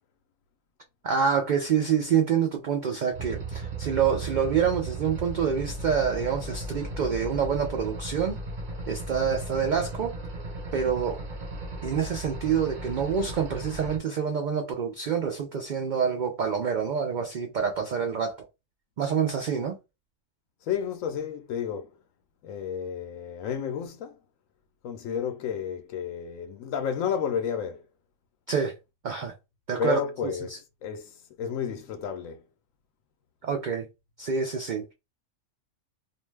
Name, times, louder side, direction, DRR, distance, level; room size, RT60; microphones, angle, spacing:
voice 1, 1.0-8.4 8.9-10.2 10.7-11.2 11.8-18.4 19.0-19.8 28.5-28.8 29.0-29.3 29.7-30.3 33.4-33.9 34.2-34.9, right 7 dB, 75° right, 0.4 m, -27 dB
sound 1, 3.1-14.0, right 2 dB, 45° right, 0.8 m, -36 dB
voice 2, 20.6-22.0 22.4-24.2 24.8-27.8 29.8-32.4, left 8 dB, 80° left, 1.0 m, -31 dB
2.5 x 2.2 x 3.2 m
omnidirectional pair, 1.4 m